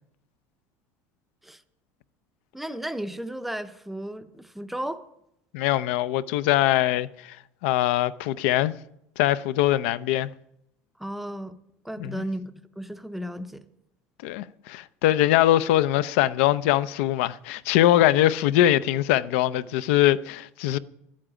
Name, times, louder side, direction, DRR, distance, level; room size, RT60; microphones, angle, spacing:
voice 1, 2.5-5.0 11.0-11.5 11.8-12.5 12.8-13.6, right 1 dB, 5° right, 0.5 m, -34 dB
voice 2, 5.5-7.4 7.6-8.7 9.2-10.3 12.0-12.2 14.2-20.8, left 13 dB, 80° left, 0.5 m, -22 dB
12.0 x 8.7 x 8.9 m
cardioid pair, 175°, 7 cm